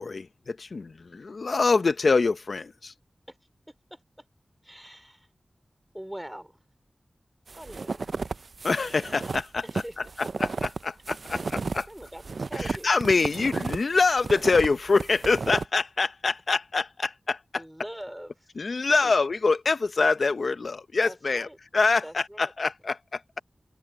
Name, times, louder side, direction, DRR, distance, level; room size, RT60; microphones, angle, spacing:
voice 1, 0.0-2.9 8.6-9.6 10.2-11.8 12.6-17.6 18.6-21.5 21.7-23.2, left 4 dB, 70° left, 0.7 m, -25 dB
voice 2, 3.7-4.3 4.6-5.3 5.9-6.6 7.6-8.2 9.6-10.0 11.5-12.9 17.6-18.5 18.9-19.1 21.0-21.6 22.0-22.5, equal, 5° right, 3.9 m, -43 dB
sound 1, 7.5-13.8 14.2-15.7, right 4 dB, 70° right, 0.3 m, -33 dB
wide cardioid pair, 85°, 0 cm